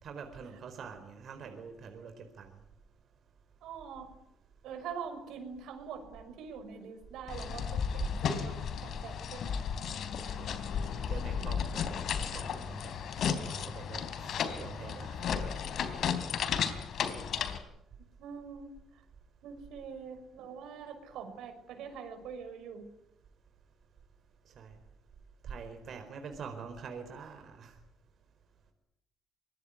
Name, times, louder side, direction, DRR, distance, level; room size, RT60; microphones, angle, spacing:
voice 1, 0.0-2.5 10.4-10.5 11.1-15.2 24.6-24.7 25.4-27.7, right 5 dB, 65° right, 6 dB, 4.6 m, -45 dB
voice 2, 3.6-4.1 4.6-9.7 16.9-17.0 18.2-19.0 19.4-22.9, right 6 dB, 85° right, 7 dB, 6.0 m, -44 dB
sound 1, 7.3-17.6, left 7 dB, 70° left, 3.6 m, -34 dB
24.5 x 21.5 x 9.9 m, 0.79 s
cardioid pair, 90°, 0 cm